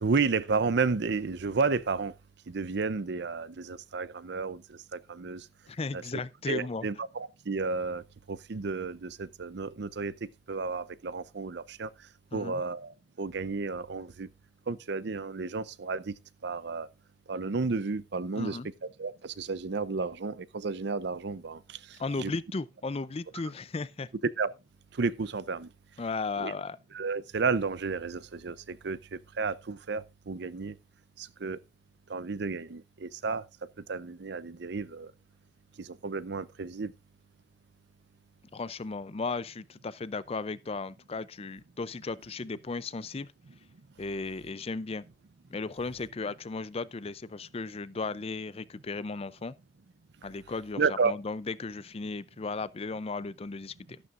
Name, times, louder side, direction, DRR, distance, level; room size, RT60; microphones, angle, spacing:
voice 1, 0.0-2.1 2.5-5.5 5.9-6.0 6.5-11.9 12.3-14.3 14.7-16.1 16.4-16.9 17.3-18.6 19.0-21.8 22.2-22.3 24.2-24.5 25.0-25.7 26.4-26.5 26.9-30.7 31.2-31.6 32.1-33.4 33.9-35.1 35.8-36.9 50.8-51.1, right 4 dB, 65° right, 0.6 m, -32 dB
voice 2, 5.7-6.9 12.3-12.6 18.4-18.7 22.0-24.1 26.0-26.8 38.5-43.3 44.0-45.0 45.5-49.5 50.2-54.0, left 3 dB, 35° left, 0.5 m, -35 dB
12.5 x 11.5 x 2.5 m
head